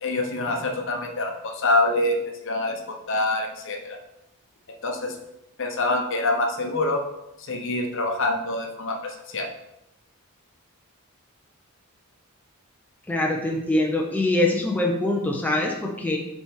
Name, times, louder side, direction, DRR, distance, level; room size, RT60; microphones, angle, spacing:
voice 1, 0.0-2.2 2.4-4.0 4.8-5.1 5.6-7.0 7.5-9.5, left 2 dB, 60° left, 3 dB, 0.9 m, -25 dB
voice 2, 13.1-16.2, left 2 dB, 10° left, 0 dB, 0.7 m, -23 dB
6.9 x 4.4 x 3.7 m, 0.86 s
head